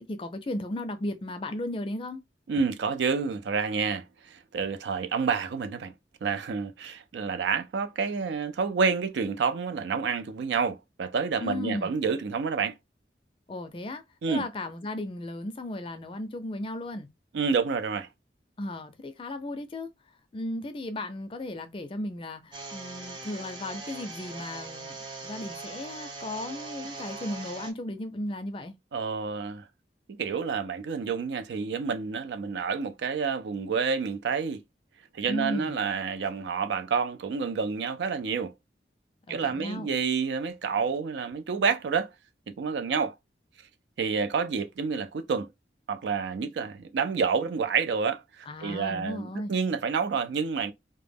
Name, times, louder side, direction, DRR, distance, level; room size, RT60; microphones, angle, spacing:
voice 1, 0.0-2.2 11.4-12.0 13.5-17.1 18.6-19.9 20.3-25.0 25.2-28.7 35.3-35.8 39.3-39.9 48.5-49.5, left 1 dB, 30° left, 0.4 m, -35 dB
voice 2, 2.5-5.9 6.2-12.7 14.2-14.5 17.3-18.1 28.9-29.6 30.1-34.6 35.1-38.5 39.3-42.1 42.5-43.1 44.0-45.5 45.9-50.7, right 5 dB, 80° right, 0.4 m, -29 dB
sound 1, 22.5-27.7, right 3 dB, 25° right, 0.5 m, -41 dB
2.1 x 2.0 x 3.3 m
head